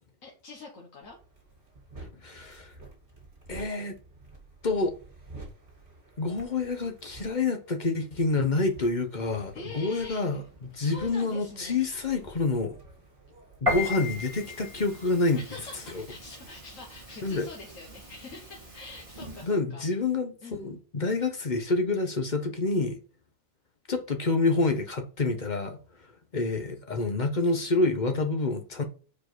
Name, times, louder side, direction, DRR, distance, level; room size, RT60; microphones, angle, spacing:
voice 1, 0.2-1.2 9.5-10.4 10.8-11.8 15.3-19.8 20.4-20.8, left 3 dB, 75° left, 1.7 m, -45 dB
sound 1, 1.0-13.6, right 2 dB, 40° right, 2.3 m, -50 dB
voice 2, 2.2-2.7 3.5-4.0 4.6-4.9 6.2-10.4 10.7-12.8 13.6-15.4 15.9-16.0 17.2-17.5 19.4-23.0 23.9-25.8 26.3-28.8, left 3 dB, 40° left, 1.0 m, -27 dB
Piano, 13.7-19.5, left 2 dB, 25° right, 1.8 m, -36 dB
4.9 x 4.6 x 6.1 m
omnidirectional pair, 1.4 m